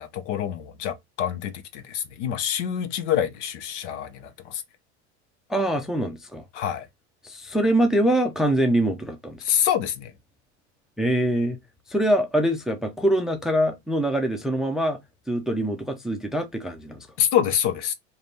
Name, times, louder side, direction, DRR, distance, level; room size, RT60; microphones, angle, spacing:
voice 1, 0.0-4.6 6.5-6.9 9.4-10.1 17.2-17.9, left 9 dB, 75° left, 0.9 m, -26 dB
voice 2, 5.5-6.4 7.2-9.4 11.0-11.6 11.9-15.0 15.3-17.1, right 1 dB, ahead, 0.4 m, -24 dB
3.3 x 2.5 x 4.0 m
supercardioid pair, 125°, 35 cm